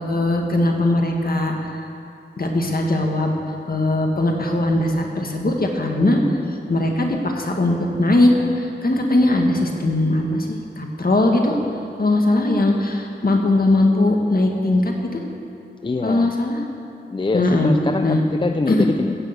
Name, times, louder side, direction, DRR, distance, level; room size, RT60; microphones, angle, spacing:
voice 1, 0.0-1.7 2.4-3.4 3.7-6.2 6.7-11.6 12.0-15.2 16.0-16.6 17.3-17.7 18.0-18.2 18.7-18.9, left 2 dB, 55° left, 1 dB, 1.8 m, -19 dB
voice 2, 15.8-16.3 17.1-19.2, left 3 dB, 25° left, 7 dB, 0.4 m, -24 dB
15.5 x 6.7 x 8.1 m, 2.6 s
wide cardioid pair, 80°, 19 cm